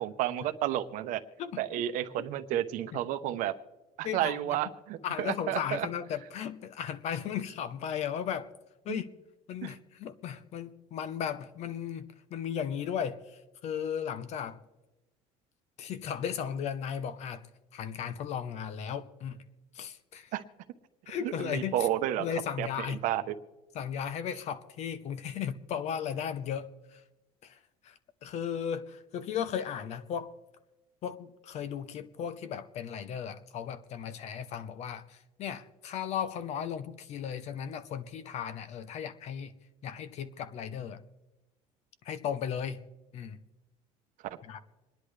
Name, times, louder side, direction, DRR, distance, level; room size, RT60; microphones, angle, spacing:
voice 1, 0.0-1.2 1.6-3.5 4.0-5.9 8.9-9.0 9.6-9.7 20.3-20.4 21.2-22.3 22.6-23.2, right 12 dB, 65° right, 0.9 m, -31 dB
voice 2, 4.0-4.6 5.0-8.5 8.8-9.0 9.5-14.6 15.8-17.5 17.7-19.4 19.7-20.3 21.1-21.9 22.2-23.0 23.7-27.0 27.4-27.9 28.2-30.3 31.0-39.5 39.8-41.0 42.0-42.9 43.1-43.4 44.4-44.6, left 8 dB, 50° left, 0.9 m, -36 dB
26.5 x 10.5 x 3.3 m
cardioid pair, 150°, 15 cm